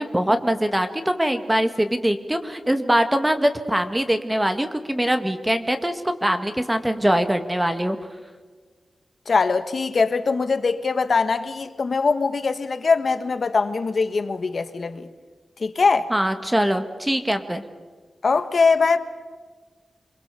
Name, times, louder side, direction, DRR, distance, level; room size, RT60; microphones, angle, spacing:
voice 1, 0.0-8.0 16.1-17.6, right 1 dB, 10° right, 1.8 m, -22 dB
voice 2, 9.3-15.1 15.6-16.1 18.2-19.0, left 4 dB, 60° left, 1.5 m, -21 dB
27.5 x 22.5 x 6.9 m
wide cardioid pair, 90°, 0 cm